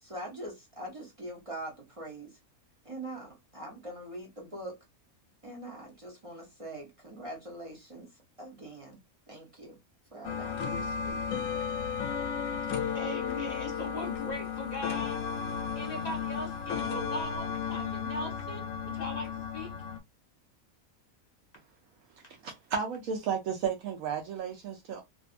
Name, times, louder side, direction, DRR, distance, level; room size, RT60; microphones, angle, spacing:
voice 1, 0.0-2.4 2.8-4.8 5.4-8.1 8.4-9.0 9.3-9.8 10.1-11.2, right 1 dB, 30° right, 0.6 m, -43 dB
sound 1, 10.2-20.0, left 7 dB, 70° left, 0.9 m, -34 dB
voice 2, 12.9-19.7, left 1 dB, 35° left, 0.9 m, -39 dB
voice 3, 22.4-25.0, right 7 dB, 75° right, 1.0 m, -33 dB
2.6 x 2.5 x 2.4 m
omnidirectional pair, 1.5 m